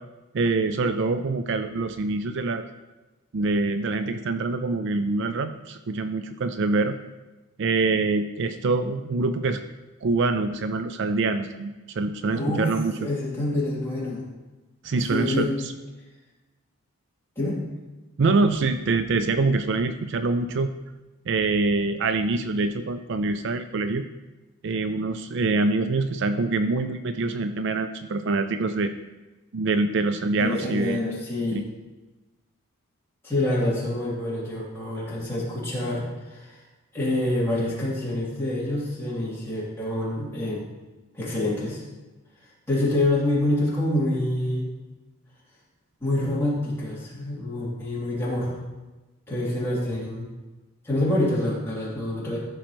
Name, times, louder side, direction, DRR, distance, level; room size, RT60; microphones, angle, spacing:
voice 1, 0.3-2.6 3.3-7.0 7.6-9.6 10.0-12.9 14.8-15.7 18.2-20.7 21.3-24.0 24.6-28.9 29.5-31.0 31.5-31.7, right 3 dB, 55° right, 9 dB, 0.4 m, -25 dB
voice 2, 12.2-12.7 13.0-14.3 15.1-15.6 17.3-17.6 30.4-31.7 33.2-36.6 36.9-40.6 41.1-41.8 42.7-44.7 46.0-48.6 49.3-50.3 50.8-52.4, left 1 dB, 10° left, -8 dB, 3.0 m, -26 dB
14.0 x 6.2 x 3.1 m, 1.1 s
head